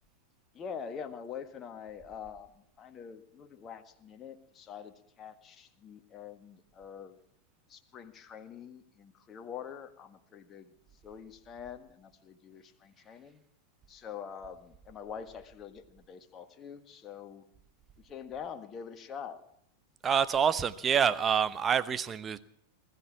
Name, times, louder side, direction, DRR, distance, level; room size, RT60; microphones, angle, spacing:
voice 1, 0.5-7.2 7.7-10.7 11.0-13.4 13.9-17.4 18.0-19.4, left 7 dB, 25° left, 1.6 m, -45 dB
voice 2, 20.0-22.4, right 7 dB, 20° right, 0.9 m, -27 dB
20.5 x 14.0 x 4.8 m
figure-of-eight pair, 90°, 0 cm